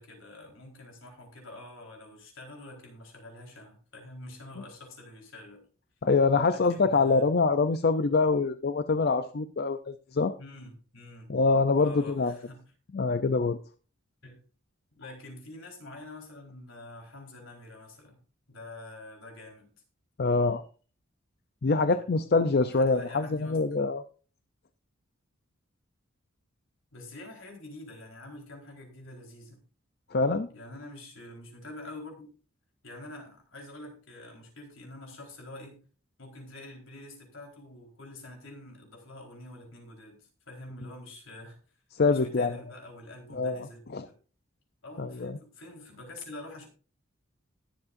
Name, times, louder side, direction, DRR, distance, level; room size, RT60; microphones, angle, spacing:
voice 1, 0.0-5.7 6.5-7.2 10.4-11.4 11.8-12.7 14.2-14.4 14.9-18.2 18.5-19.7 21.9-22.2 22.7-23.9 26.9-29.6 30.5-32.3 32.8-35.8 36.2-41.6 42.1-44.2 44.8-46.7, left 2 dB, 70° left, 1 dB, 4.2 m, -46 dB
voice 2, 6.0-10.3 11.3-12.3 12.9-13.6 20.2-20.6 21.6-24.0 30.1-30.5 41.9-42.5 43.3-43.7 43.9-44.0 45.0-45.3, left 4 dB, 50° left, 11 dB, 0.5 m, -25 dB
20.5 x 7.2 x 2.6 m, 0.38 s
head